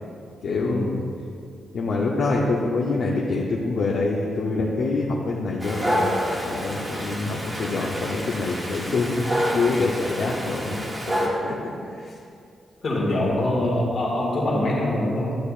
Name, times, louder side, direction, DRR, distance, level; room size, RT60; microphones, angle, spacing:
voice 1, 0.4-1.1 1.7-6.1 6.4-10.8 11.4-12.1, left 3 dB, 60° left, -3 dB, 0.7 m, -25 dB
Dog, 5.6-11.3, equal, 20° right, 1.2 m, -28 dB
voice 2, 12.8-15.4, left 1 dB, 45° left, -3 dB, 1.8 m, -24 dB
12.0 x 8.5 x 2.5 m, 2.4 s
wide cardioid pair, 170°, 0 cm